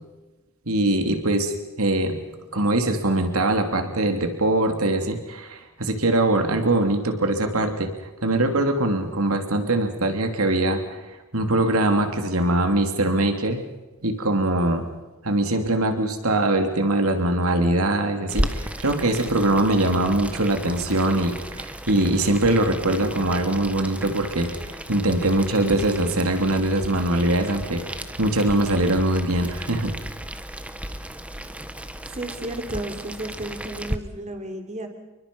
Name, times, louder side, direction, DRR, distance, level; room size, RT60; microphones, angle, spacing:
voice 1, 0.7-1.5 1.8-2.2 2.5-7.9 8.2-11.0 11.3-13.6 14.0-14.8 15.2-29.9, right 1 dB, 85° right, 5 dB, 3.2 m, -22 dB
Boiling, 18.3-34.0, equal, 5° right, 1.2 m, -34 dB
voice 2, 32.1-34.9, right 1 dB, 30° right, 5 dB, 3.6 m, -33 dB
29.0 x 23.5 x 5.5 m, 1.1 s
head